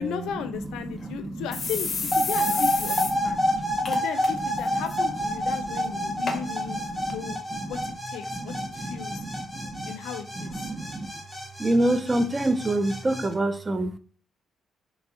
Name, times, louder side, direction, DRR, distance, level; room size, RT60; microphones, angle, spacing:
voice 1, 0.0-3.4 3.9-6.8 7.1-7.4 7.7-9.2 9.9-10.7, left 8 dB, 90° left, 0.4 m, -35 dB
sound 1, 0.6-0.7 1.0-1.1 1.5-3.1 3.5-3.6 3.8-4.3 4.6-4.9 5.6-5.7 6.3-6.4 7.1-7.2, left 4 dB, 45° left, 0.6 m, -31 dB
voice 2, 0.6-1.5 2.4-2.5 3.1-3.9 4.7-4.8 5.6-7.7 8.3-9.9 10.4-11.1 11.6-14.0, right 1 dB, 25° right, 0.3 m, -29 dB
sound 2, 2.1-13.3, equal, 5° left, 0.7 m, -29 dB
3.4 x 2.0 x 3.6 m
cardioid pair, 90°, 0 cm